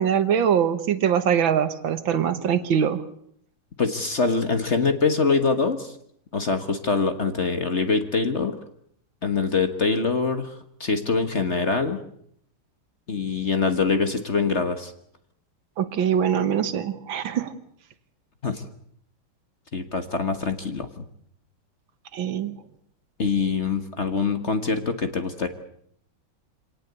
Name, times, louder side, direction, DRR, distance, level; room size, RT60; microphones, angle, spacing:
voice 1, 0.0-3.0 15.8-17.5 22.1-22.5, right 8 dB, 70° right, 12 dB, 1.9 m, -23 dB
voice 2, 3.8-6.0 6.3-8.6 9.2-12.0 13.1-14.9 18.4-18.6 19.7-21.0 23.2-25.5, left 4 dB, 35° left, 8 dB, 1.5 m, -24 dB
25.5 x 18.0 x 8.2 m, 0.68 s
omnidirectional pair, 2.3 m